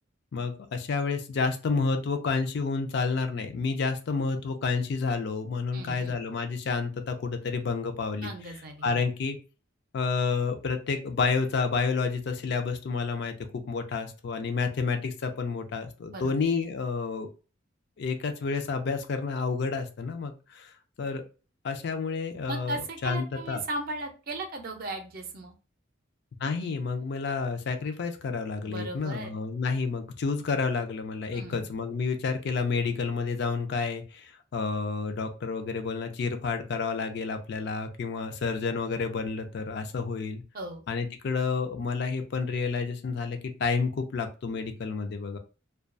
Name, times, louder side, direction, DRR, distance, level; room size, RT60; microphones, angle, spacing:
voice 1, 0.3-8.3 8.8-9.4 9.9-17.3 18.0-20.7 21.0-21.2 21.6-23.6 26.4-40.4 40.9-45.4, left 4 dB, 55° left, 7 dB, 0.4 m, -30 dB
voice 2, 5.7-6.2 8.2-9.1 16.1-16.4 22.5-25.5 28.6-29.3 31.3-31.6 40.5-40.8, right 2 dB, 45° right, 4 dB, 0.5 m, -37 dB
2.3 x 2.2 x 2.5 m, 0.33 s
head